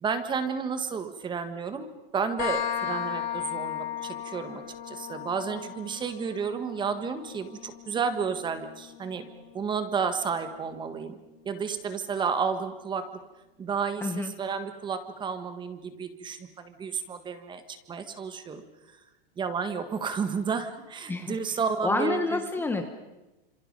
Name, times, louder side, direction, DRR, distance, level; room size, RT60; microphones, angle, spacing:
voice 1, 0.0-9.2 9.5-11.2 11.4-13.0 13.6-18.6 19.4-22.4, right 6 dB, 15° right, 10 dB, 1.6 m, -31 dB
sound 1, 2.4-9.8, left 9 dB, 50° left, 3.8 m, -36 dB
voice 2, 14.0-14.3 21.1-22.9, left 3 dB, 5° left, 6 dB, 1.2 m, -29 dB
28.5 x 27.0 x 5.4 m, 1.0 s
supercardioid pair, 155°, 29 cm